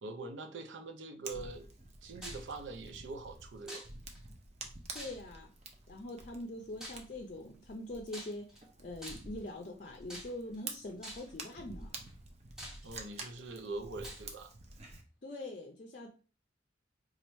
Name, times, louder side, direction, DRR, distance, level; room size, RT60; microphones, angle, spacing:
voice 1, 0.0-1.7 2.0-3.9 12.8-14.5, right 3 dB, 80° right, 5 dB, 0.6 m, -43 dB
Fire, 1.3-15.0, right 3 dB, 35° right, 0.5 m, -49 dB
sound 1, 2.2-2.5 3.7-4.2 4.9-5.5 6.8-7.1 8.1-8.6 9.0-9.4 10.1-10.6 11.0-11.4 12.1-12.2 12.6-13.2 14.0-14.3, equal, 5° right, 0.7 m, -47 dB
voice 2, 4.9-5.5 5.9-8.5 8.8-11.9 15.2-16.1, left 1 dB, 45° left, 2 dB, 0.5 m, -43 dB
3.0 x 2.4 x 4.2 m, 0.37 s
head